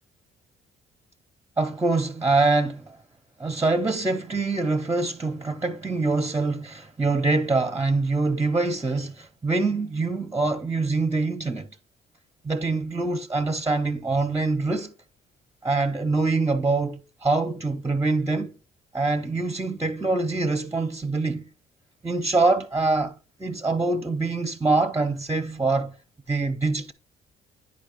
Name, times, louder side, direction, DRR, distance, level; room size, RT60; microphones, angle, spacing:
voice 1, 1.6-3.0 3.4-11.7 12.4-14.9 15.6-18.5 18.9-21.5 22.0-25.9 26.3-26.9, right 3 dB, 10° right, 0.8 m, -24 dB
9.8 x 4.8 x 3.7 m
cardioid pair, 90°, 20 cm